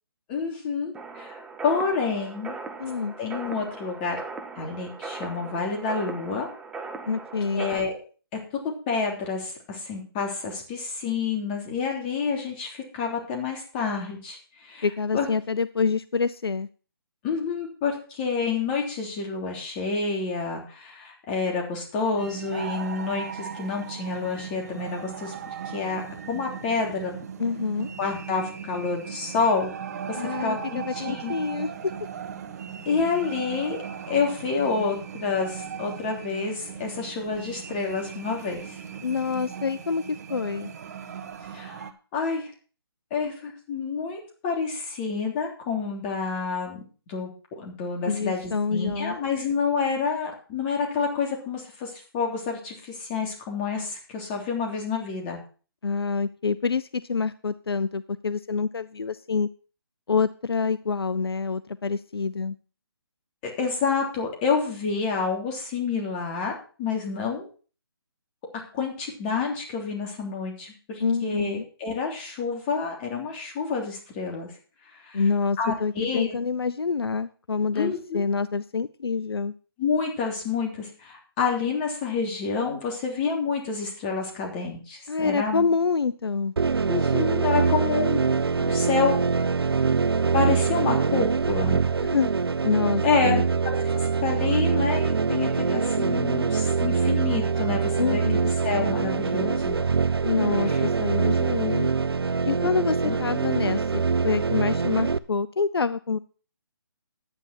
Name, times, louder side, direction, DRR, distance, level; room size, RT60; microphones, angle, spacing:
voice 1, 0.3-2.6 3.2-4.2 4.6-6.5 7.5-8.0 8.3-8.4 8.9-14.9 15.1-15.3 17.2-25.3 25.7-26.0 26.3-27.1 28.0-29.7 30.1-31.4 32.9-33.8 34.1-38.8 41.5-41.9 42.1-42.5 43.1-47.3 47.6-55.4 63.4-66.5 66.8-67.5 68.7-74.5 75.0-75.2 75.6-76.4 77.8-78.2 79.8-85.7 86.9-88.2 88.6-89.1 90.3-91.8 93.0-93.8 94.2-98.2 98.6-99.8 100.7-100.8 103.0-103.2, left 5 dB, 25° left, 0 dB, 3.3 m, -28 dB
sound 1, 0.9-7.8, right 4 dB, 5° right, 0.7 m, -39 dB
voice 2, 2.8-3.1 7.1-7.7 14.8-16.7 27.4-27.9 30.2-31.7 39.0-40.7 48.1-49.2 55.8-59.5 60.1-62.6 71.0-71.6 75.1-79.5 85.1-86.5 92.0-92.3 92.6-93.4 98.0-98.5 100.2-101.9 102.5-106.2, left 5 dB, 80° left, 15 dB, 0.6 m, -27 dB
sound 2, 22.2-41.9, right 7 dB, 40° right, 0.9 m, -38 dB
sound 3, 86.6-105.2, right 5 dB, 80° right, 0.7 m, -24 dB
11.0 x 9.8 x 4.4 m, 0.38 s
figure-of-eight pair, 150°, 13 cm